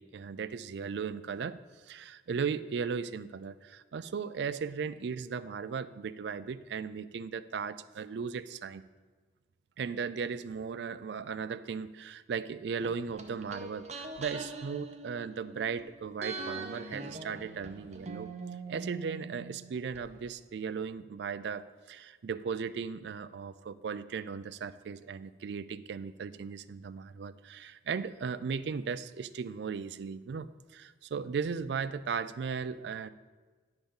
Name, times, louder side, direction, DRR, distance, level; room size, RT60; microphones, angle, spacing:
voice 1, 0.0-1.6 1.9-8.9 9.8-18.3 18.7-33.1, right 6 dB, 65° right, 15 dB, 0.3 m, -37 dB
sound 1, 12.8-15.8 16.2-20.0 20.3-20.4, right 3 dB, 35° right, 0.7 m, -43 dB
10.0 x 4.0 x 6.9 m, 1.4 s
head